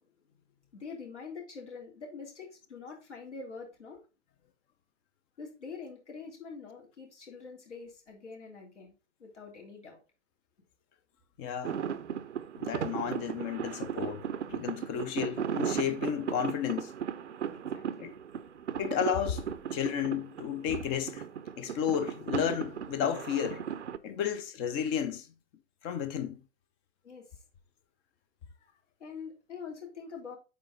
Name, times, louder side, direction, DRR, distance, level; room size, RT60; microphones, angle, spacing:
voice 1, 0.7-4.0 5.4-8.9 9.2-10.0 17.5-18.1 24.2-24.3 27.0-27.4 29.0-30.4, left 5 dB, 75° left, 3.4 m, -45 dB
voice 2, 11.4-11.8 12.6-16.9 18.0-18.1 18.8-19.4 19.7-21.3 21.6-23.6 24.0-25.3 25.8-26.4, left 8 dB, 15° left, 0.4 m, -32 dB
sound 1, 11.6-24.0, right 8 dB, 75° right, 0.7 m, -36 dB
8.2 x 4.7 x 3.9 m
figure-of-eight pair, 115°, 36 cm